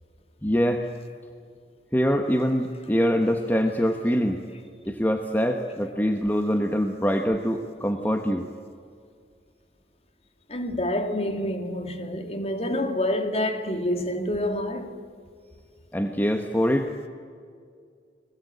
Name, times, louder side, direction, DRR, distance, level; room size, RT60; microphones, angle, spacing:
voice 1, 0.4-0.8 1.9-4.4 4.9-8.5 15.9-16.9, equal, 10° left, 1.1 m, -24 dB
voice 2, 10.5-15.0, left 1 dB, 35° left, 2.1 m, -27 dB
30.0 x 21.0 x 8.3 m
head